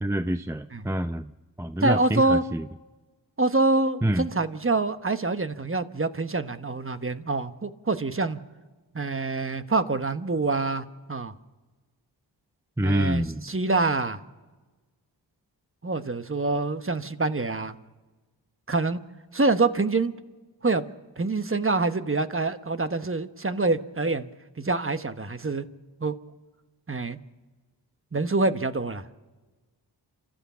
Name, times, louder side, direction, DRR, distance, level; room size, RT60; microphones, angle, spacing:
voice 1, 0.0-1.3 1.6-2.6 4.0-4.3 12.8-13.4, right 1 dB, 5° right, 11 dB, 0.5 m, -26 dB
voice 2, 1.8-2.4 3.4-8.4 8.9-11.3 12.8-14.2 15.8-17.8 18.7-19.0 19.3-20.1 20.6-20.8 21.2-24.3 24.6-25.7 26.0-26.1 26.9-27.2 28.1-29.1, right 3 dB, 30° right, 10 dB, 1.1 m, -26 dB
28.0 x 13.0 x 7.3 m, 1.3 s
cardioid pair, 45°, 45 cm